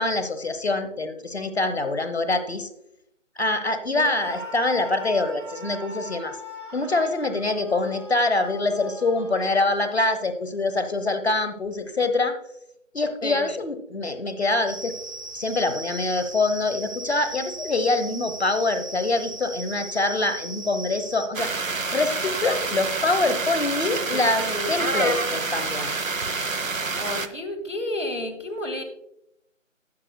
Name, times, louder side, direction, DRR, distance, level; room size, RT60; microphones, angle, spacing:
voice 1, 0.0-2.7 3.4-6.4 6.7-12.4 12.9-14.9 15.3-25.9, left 2 dB, 55° left, 10 dB, 1.0 m, -25 dB
Screaming, 4.2-10.1, equal, 20° left, 1.3 m, -40 dB
sound 1, 14.7-21.3, right 2 dB, 35° right, 1.1 m, -38 dB
sound 2, 21.3-27.3, right 3 dB, 90° right, 0.9 m, -27 dB
voice 2, 24.1-24.8 27.0-28.8, left 1 dB, 70° left, 6 dB, 2.0 m, -31 dB
15.5 x 6.6 x 2.2 m, 0.78 s
figure-of-eight pair, 170°, 38 cm